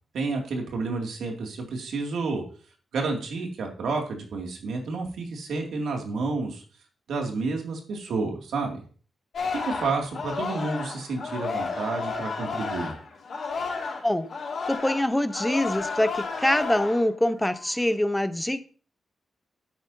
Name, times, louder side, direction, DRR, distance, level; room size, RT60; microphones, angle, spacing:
voice 1, 0.1-2.4 2.9-6.6 7.1-8.8 9.5-12.9, right 3 dB, 90° right, 2 dB, 2.4 m, -30 dB
Singing, 9.3-14.0 14.3-17.1 17.5-17.8, left 4 dB, 65° left, 3.3 m, -32 dB
voice 2, 14.7-18.6, left 1 dB, 5° left, 11 dB, 0.8 m, -24 dB
12.0 x 9.1 x 2.7 m, 0.40 s
cardioid pair, 105°, 0 cm